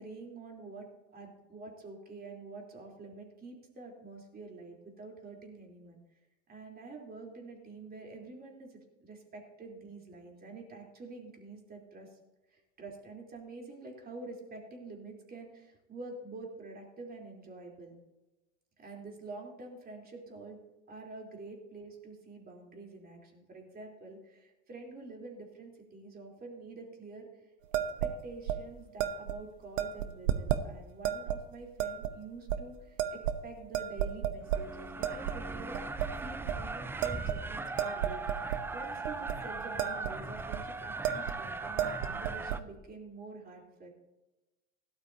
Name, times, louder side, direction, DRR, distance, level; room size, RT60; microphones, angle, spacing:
voice 1, 0.0-6.0 6.5-12.1 12.5-18.0 18.8-20.6 20.9-35.8 36.2-43.9, right 3 dB, 25° right, 1 dB, 3.6 m, -47 dB
sound 1, 27.7-28.1 28.5-28.6 29.0-29.4 29.8-30.6 31.0-31.4 31.8-32.1 32.5-32.6 33.0-33.5 33.7-34.6 35.0-35.4 35.7-36.1 36.5-36.6 37.0-38.6 39.0-39.4 39.6-40.1 40.4-40.6 41.0-41.4 41.7-42.6, right 10 dB, 70° right, 1.0 m, -32 dB
sound 2, 34.5-42.6, right 3 dB, 5° right, 0.4 m, -39 dB
17.0 x 12.0 x 2.8 m, 1.0 s
hypercardioid pair, 100°, 39 cm